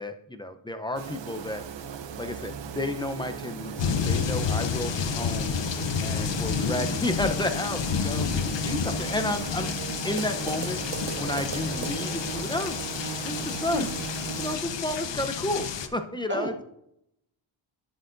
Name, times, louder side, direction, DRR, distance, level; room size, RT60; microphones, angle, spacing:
voice 1, 0.0-1.6 2.2-5.6 6.0-9.7 10.0-10.8 11.2-12.8 13.2-13.9 14.4-16.5, left 1 dB, 10° left, 7 dB, 0.5 m, -31 dB
sound 1, 0.9-14.6, right 7 dB, 60° right, 0.7 m, -37 dB
sound 2, 3.8-15.9, left 7 dB, 60° left, 0.7 m, -30 dB
voice 2, 6.1-6.4 13.7-13.9 16.3-16.6, right 1 dB, 25° right, 4 dB, 0.9 m, -32 dB
10.0 x 7.7 x 2.5 m, 0.76 s
wide cardioid pair, 105°, 49 cm